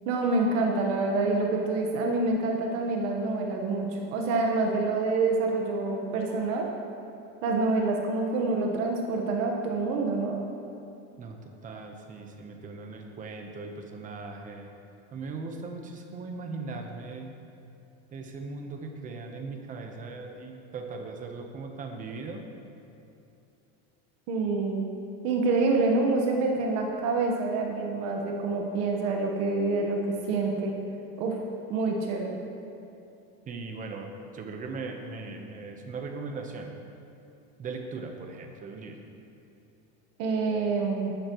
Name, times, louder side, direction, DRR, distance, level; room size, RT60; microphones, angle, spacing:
voice 1, 0.0-6.7 7.4-10.4 24.3-24.8 25.2-30.0 30.3-30.7 31.2-31.4 31.7-32.3 40.2-41.1, right 3 dB, 65° right, 1 dB, 1.4 m, -27 dB
voice 2, 11.2-14.7 15.1-17.3 18.1-22.5 33.5-36.7 37.6-39.0, right 3 dB, 25° right, 3 dB, 1.0 m, -39 dB
14.5 x 11.5 x 3.1 m, 2.8 s
cardioid pair, 160°, 29 cm